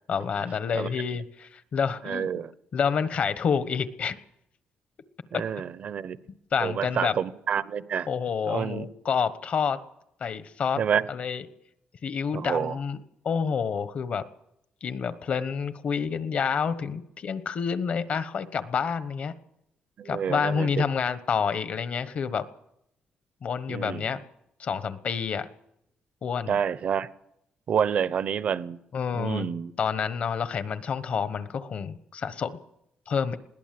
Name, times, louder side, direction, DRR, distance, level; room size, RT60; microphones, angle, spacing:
voice 1, 0.1-2.3 2.7-4.2 5.3-5.4 6.5-7.1 8.1-9.8 10.2-10.8 11.1-11.5 12.0-13.0 13.2-14.2 14.8-19.3 20.0-22.5 23.4-24.2 24.6-25.5 26.2-26.6 28.9-29.5 29.8-32.6 33.1-33.4, left 6 dB, 45° left, 13 dB, 1.1 m, -28 dB
voice 2, 2.0-2.5 5.3-6.2 6.6-8.1 8.5-8.8 10.8-11.0 12.3-12.8 20.0-20.9 23.7-24.1 26.5-27.1 27.7-28.8 29.1-29.7, right 8 dB, 45° right, 16 dB, 0.7 m, -28 dB
21.0 x 17.5 x 7.7 m, 0.80 s
cardioid pair, 170°, 3 cm